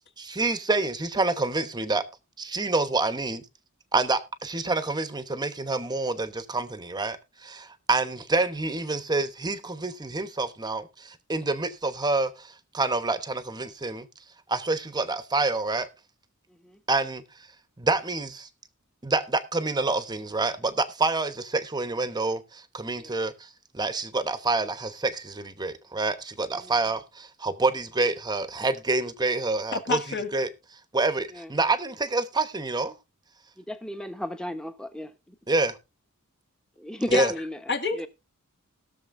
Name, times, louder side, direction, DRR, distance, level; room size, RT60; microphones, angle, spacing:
voice 1, 0.2-2.0 2.4-3.4 3.9-7.2 7.4-14.1 14.5-15.9 16.9-17.2 17.8-18.5 19.0-23.3 23.7-30.0 30.3-30.5 30.9-32.9 35.5-35.8 37.1-37.3, right 3 dB, 20° right, 1.0 m, -27 dB
voice 2, 29.7-30.3 37.1-37.3 37.7-38.1, left 4 dB, 55° left, 1.9 m, -27 dB
voice 3, 33.6-35.4 36.8-37.6 37.9-38.1, left 1 dB, 5° left, 1.1 m, -35 dB
20.5 x 6.9 x 2.6 m
head